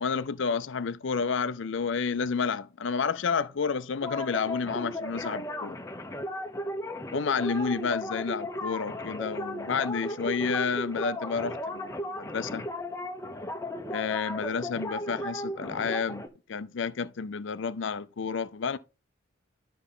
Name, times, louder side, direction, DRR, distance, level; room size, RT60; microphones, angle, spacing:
voice 1, 0.0-5.8 7.1-12.7 13.9-16.2 16.5-18.8, left 5 dB, 60° left, 0.5 m, -30 dB
sound 1, 4.0-16.3, left 1 dB, 15° left, 0.7 m, -35 dB
12.0 x 5.5 x 3.7 m
head